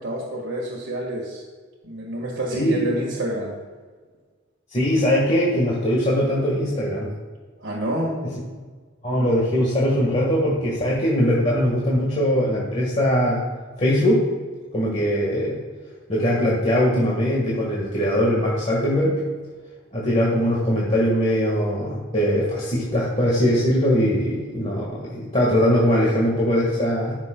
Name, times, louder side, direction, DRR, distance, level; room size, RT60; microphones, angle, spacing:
voice 1, 0.0-1.4 1.8-3.6 7.6-8.2, right 1 dB, 90° right, -5 dB, 1.6 m, -28 dB
voice 2, 4.7-7.1 9.0-13.4 13.8-14.3 14.7-15.6 16.1-19.2 19.9-27.1, equal, 35° left, -5 dB, 1.5 m, -21 dB
14.5 x 6.2 x 2.2 m, 1.5 s
head